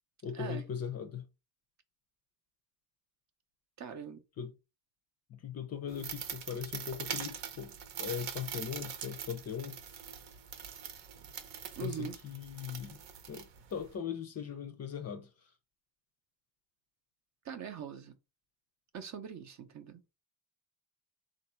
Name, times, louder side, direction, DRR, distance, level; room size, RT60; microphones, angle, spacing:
voice 1, 0.2-1.3 4.4-4.5 5.3-9.8 11.8-13.0 13.3-15.5, left 8 dB, 35° left, 0.5 m, -39 dB
voice 2, 3.8-4.2 11.8-12.2 17.4-18.1 18.9-20.0, right 7 dB, 40° right, 0.6 m, -42 dB
sound 1, 5.9-13.9, right 8 dB, 70° right, 0.9 m, -43 dB
3.8 x 2.6 x 4.3 m
cardioid pair, 175°, 45 cm